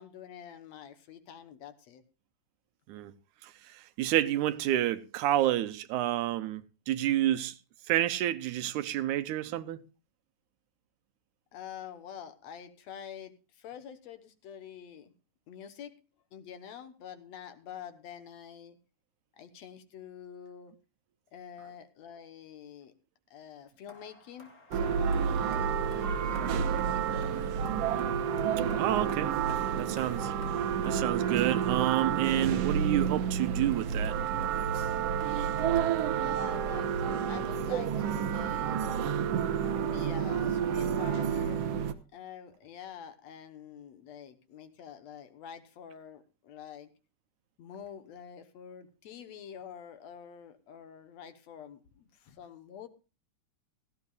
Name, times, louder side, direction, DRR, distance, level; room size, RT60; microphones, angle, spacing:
voice 1, 0.0-2.0 11.5-15.1 15.5-15.9 16.3-18.8 19.4-20.7 21.3-22.9 23.3-27.3 36.1-38.8 39.8-41.6 42.1-46.9 47.6-52.9, left 8 dB, 65° left, 2.3 m, -47 dB
voice 2, 3.4-7.6 7.9-9.8 28.7-29.3 29.8-30.3 30.9-34.2, right 13 dB, 90° right, 2.3 m, -29 dB
sound 1, 23.9-36.9, left 2 dB, 30° left, 3.0 m, -53 dB
sound 2, 24.7-41.9, right 8 dB, 65° right, 1.8 m, -30 dB
17.5 x 15.0 x 2.4 m
omnidirectional pair, 3.4 m